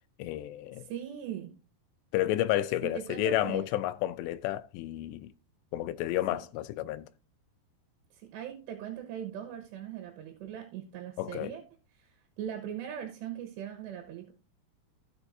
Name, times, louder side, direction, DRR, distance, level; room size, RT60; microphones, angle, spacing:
voice 1, 0.2-0.8 2.1-5.3 5.7-7.1 11.2-11.5, left 14 dB, 85° left, 2.7 m, -31 dB
voice 2, 0.8-1.5 2.8-3.7 6.3-6.4 8.1-11.6 12.0-12.1 12.4-14.3, right 10 dB, 80° right, 3.3 m, -40 dB
16.0 x 6.7 x 2.7 m
omnidirectional pair, 5.0 m